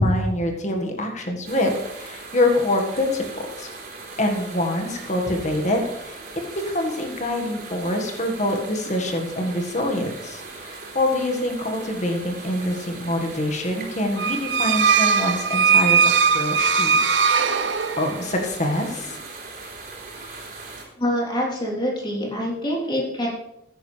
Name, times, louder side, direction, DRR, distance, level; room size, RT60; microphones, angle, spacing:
voice 1, 0.0-3.7 4.2-6.2 6.6-16.0 16.3-17.2 18.0-19.2, left 1 dB, 40° left, 3 dB, 1.8 m, -25 dB
sound 1, 1.4-20.8, right 3 dB, 55° right, 4.0 m, -39 dB
sound 2, 14.2-18.3, right 6 dB, 80° right, 0.8 m, -19 dB
voice 2, 21.0-23.3, equal, 25° left, -3 dB, 3.7 m, -25 dB
15.5 x 10.0 x 3.4 m, 0.83 s
head